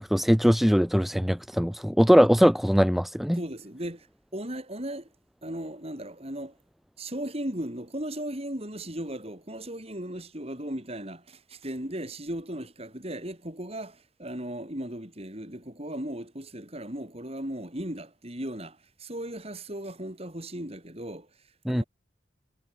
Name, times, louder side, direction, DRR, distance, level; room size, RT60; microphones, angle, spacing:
voice 1, 0.0-3.4 21.6-21.8, equal, ahead, 1.1 m, -21 dB
voice 2, 3.3-4.1 4.3-5.1 5.4-6.6 7.0-21.3 21.7-21.8, right 1 dB, 35° right, 7.9 m, -36 dB
head